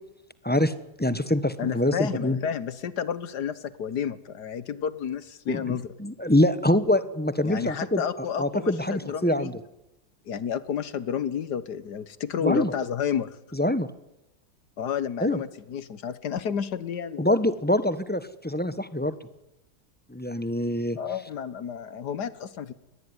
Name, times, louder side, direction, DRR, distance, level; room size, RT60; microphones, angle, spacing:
voice 1, 1.0-2.4 5.5-8.0 8.4-9.5 12.4-12.7 13.5-13.9 15.2-15.4 17.2-19.2 20.1-21.0, left 1 dB, 5° left, 13 dB, 0.9 m, -25 dB
voice 2, 1.6-5.9 7.4-9.5 10.3-13.4 14.8-17.4 21.0-22.7, left 8 dB, 75° left, 15 dB, 1.7 m, -31 dB
25.5 x 20.0 x 9.7 m, 0.91 s
omnidirectional pair, 1.8 m